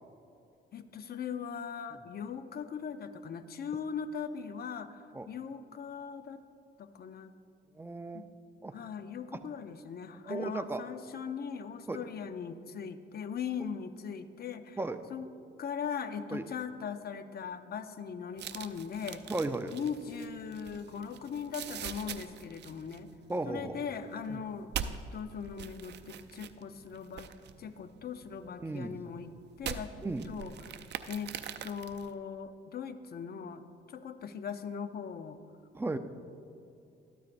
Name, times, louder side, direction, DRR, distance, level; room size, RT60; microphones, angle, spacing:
voice 1, 0.7-6.4 6.8-7.3 8.1-8.2 8.7-14.8 15.1-15.3 15.6-19.2 19.7-23.1 23.4-27.3 27.6-29.3 29.6-29.9 30.2-30.8 31.1-31.3 31.6-35.4, left 7 dB, 50° left, 10 dB, 0.6 m, -40 dB
voice 2, 7.8-8.2 8.6-8.7 10.3-10.8 11.9-12.0 14.8-15.0 16.3-16.4 19.3-19.7 23.3-23.8 24.3-24.4 28.6-28.9 30.0-30.3 35.7-36.0, right 2 dB, 10° right, 8 dB, 0.5 m, -35 dB
sound 1, 18.4-32.1, right 8 dB, 60° right, 0.5 m, -44 dB
13.0 x 12.5 x 2.6 m, 2.6 s
cardioid pair, 90°, 20 cm